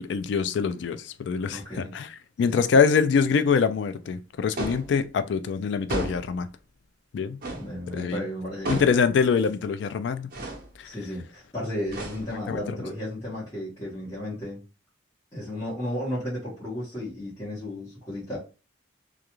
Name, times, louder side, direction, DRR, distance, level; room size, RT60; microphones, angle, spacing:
voice 1, 0.0-1.6 1.9-2.1 2.4-6.5 7.1-7.4 8.0-8.2 8.7-10.3 12.5-12.6, left 6 dB, 65° left, 0.3 m, -24 dB
voice 2, 1.5-1.9 2.4-2.6 7.5-8.8 10.8-14.6 15.3-18.4, left 1 dB, 15° left, 1.1 m, -34 dB
sound 1, 4.6-4.9 5.9-6.4 7.4-7.7 8.6-9.1 10.3-10.7 11.9-12.5, right 2 dB, 50° right, 0.7 m, -33 dB
2.4 x 2.3 x 2.9 m
head